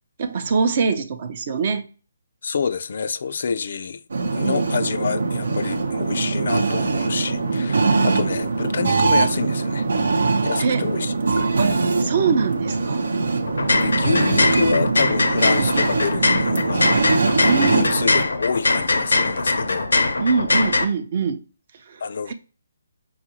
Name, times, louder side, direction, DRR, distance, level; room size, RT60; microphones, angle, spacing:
voice 1, 0.2-1.8 4.4-4.7 8.1-8.3 10.6-10.8 11.6-13.0 17.4-17.9 20.2-21.4 21.9-22.0 22.3-22.4, right 5 dB, 45° right, 0.6 m, -23 dB
voice 2, 2.4-4.0 4.3-9.9 10.4-11.7 13.8-19.9 22.0-22.3, left 5 dB, 60° left, 0.3 m, -27 dB
sound 1, 4.1-18.2, right 3 dB, 80° right, 0.7 m, -22 dB
sound 2, 13.5-20.9, left 3 dB, 90° left, 0.6 m, -21 dB
5.3 x 2.4 x 2.8 m
hypercardioid pair, 160°, 0 cm